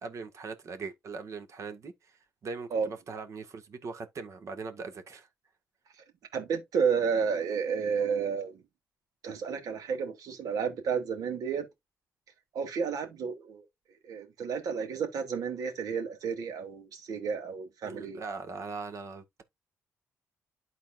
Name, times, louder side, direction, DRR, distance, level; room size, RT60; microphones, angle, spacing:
voice 1, 0.0-5.3 17.8-19.4, right 4 dB, 55° right, 1.8 m, -40 dB
voice 2, 6.3-8.6 9.2-11.7 12.5-13.6 14.0-18.2, right 6 dB, 75° right, 2.7 m, -31 dB
12.0 x 4.2 x 2.6 m
cardioid pair, 100°, 6 cm